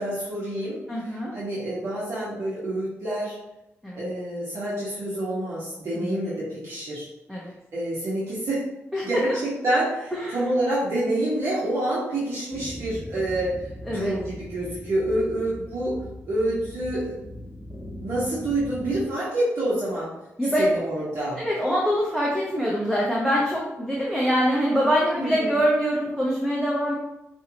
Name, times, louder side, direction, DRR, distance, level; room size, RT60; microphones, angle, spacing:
voice 1, 0.0-3.3 3.9-7.1 7.7-8.6 9.0-13.5 13.8-16.0 16.3-17.1 18.0-20.1 20.6-21.4 25.1-25.6, right 1 dB, 55° right, -9 dB, 1.5 m, -27 dB
voice 2, 0.9-1.3 3.8-4.0 5.9-6.4 7.3-7.5 8.9-9.1 10.2-10.4 13.8-14.1 20.4-20.6 21.4-26.9, equal, 5° right, -5 dB, 0.9 m, -24 dB
sound 1, 12.5-19.0, left 1 dB, 25° right, 1.5 m, -40 dB
5.4 x 2.6 x 3.0 m, 0.93 s
cardioid pair, 105°, 5 cm